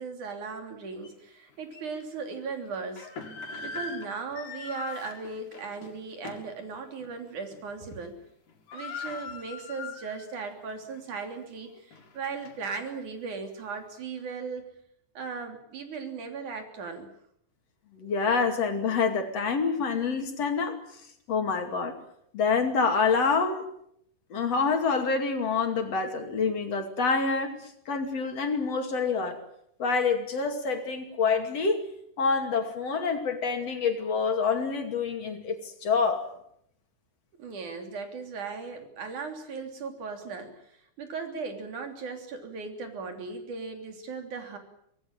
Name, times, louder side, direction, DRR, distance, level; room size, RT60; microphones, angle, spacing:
voice 1, 0.0-3.1 3.6-8.2 8.7-14.7 15.1-17.1 37.4-44.6, right 4 dB, 75° right, 5 dB, 4.7 m, -37 dB
sound 1, 1.0-1.1 1.7-1.8 2.7-6.6 7.0-7.2 7.5-7.9 8.2-8.3 8.5-10.4 10.8-10.9 11.6-12.9, left 4 dB, 75° left, 4.0 m, -41 dB
voice 2, 18.0-20.8 21.3-21.9 22.3-23.7 24.3-27.6 27.9-29.4 29.8-31.8 32.2-36.3, left 5 dB, 55° left, 6 dB, 3.5 m, -27 dB
25.0 x 18.5 x 9.1 m, 0.73 s
omnidirectional pair, 3.5 m